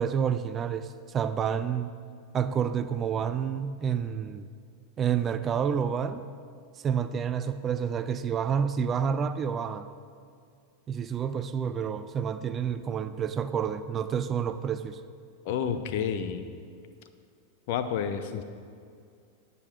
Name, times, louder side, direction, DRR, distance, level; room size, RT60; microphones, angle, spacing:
voice 1, 0.0-1.9 2.3-4.5 5.0-6.2 6.8-9.9 10.9-15.0, right 7 dB, 25° right, 11 dB, 0.5 m, -29 dB
voice 2, 15.4-16.5 17.7-18.4, left 8 dB, 50° left, 9 dB, 0.8 m, -30 dB
19.5 x 6.9 x 3.7 m, 2.3 s
figure-of-eight pair, 90°, 0 cm